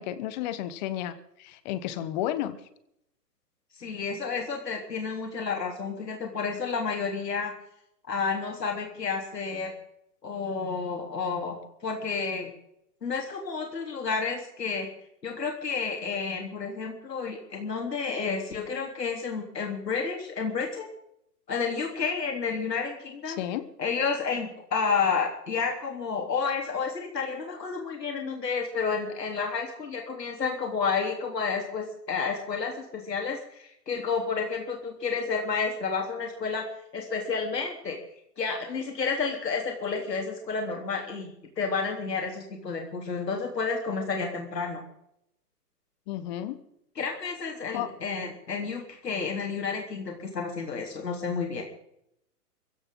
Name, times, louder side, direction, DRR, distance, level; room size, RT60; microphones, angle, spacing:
voice 1, 0.0-2.6 23.3-23.7 46.1-46.6 47.7-47.9, left 12 dB, 30° left, 14 dB, 1.1 m, -32 dB
voice 2, 3.8-7.5 8.1-9.7 10.2-12.5 13.0-14.9 15.2-20.9 21.5-23.4 23.8-36.6 36.9-38.0 38.4-44.8 47.0-51.6, left 5 dB, 85° left, 2 dB, 3.5 m, -30 dB
23.5 x 16.0 x 3.8 m, 0.78 s
hypercardioid pair, 135°, 48 cm